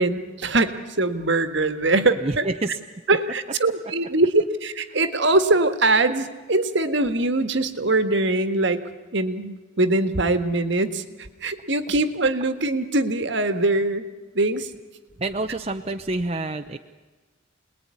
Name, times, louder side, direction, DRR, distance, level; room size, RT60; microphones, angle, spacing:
voice 1, 0.0-2.4 3.1-8.8 9.1-14.1 14.3-14.7, right 2 dB, 60° right, 9 dB, 1.7 m, -22 dB
voice 2, 2.2-2.8 4.9-5.0 15.2-16.8, right 2 dB, 30° right, 6 dB, 0.8 m, -28 dB
28.0 x 20.5 x 9.8 m, 1.3 s
head